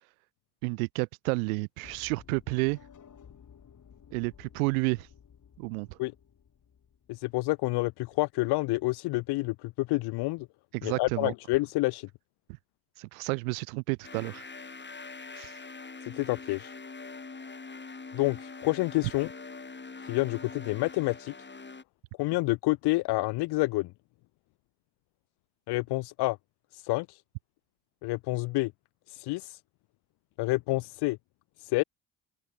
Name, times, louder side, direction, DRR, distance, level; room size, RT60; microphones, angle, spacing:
voice 1, 0.6-2.8 4.1-5.1 5.6-5.9 10.7-11.3 13.0-14.4 15.4-15.6, right 30 dB, 85° right, 0.5 m, -30 dB
sound 1, 1.8-7.8, left 8 dB, 45° left, 3.1 m, -55 dB
voice 2, 7.1-10.5 10.8-12.1 16.0-16.7 18.1-19.3 20.0-21.3 22.2-23.9 25.7-26.4 26.7-27.2 28.0-28.7 29.1-29.6 30.4-31.2 31.6-31.8, left 21 dB, 70° left, 0.7 m, -28 dB
sound 2, 14.0-21.8, left 4 dB, 25° left, 4.5 m, -44 dB
open air
hypercardioid pair, 55°, 42 cm